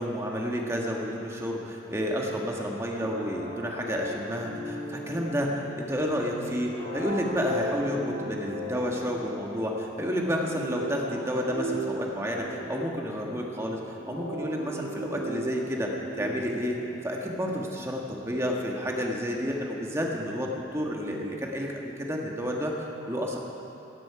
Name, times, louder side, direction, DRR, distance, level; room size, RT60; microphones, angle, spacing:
voice 1, 0.0-13.8 14.1-15.9 16.2-16.8 17.0-23.4, equal, 15° right, -1 dB, 1.5 m, -30 dB
sound 1, 3.0-17.5, right 1 dB, 55° left, 4.3 m, -37 dB
16.5 x 15.5 x 4.9 m, 2.8 s
head